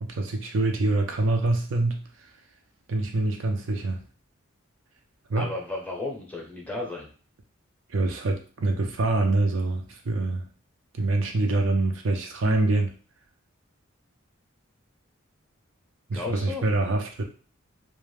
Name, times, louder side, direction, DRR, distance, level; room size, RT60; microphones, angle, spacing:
voice 1, 0.0-2.0 2.9-4.0 5.3-5.5 7.9-10.5 10.9-12.9 16.1-17.2, right 2 dB, 65° right, 4 dB, 0.5 m, -25 dB
voice 2, 5.4-7.1 16.1-16.6, left 2 dB, 10° left, -1 dB, 0.6 m, -34 dB
2.4 x 2.2 x 3.2 m, 0.38 s
head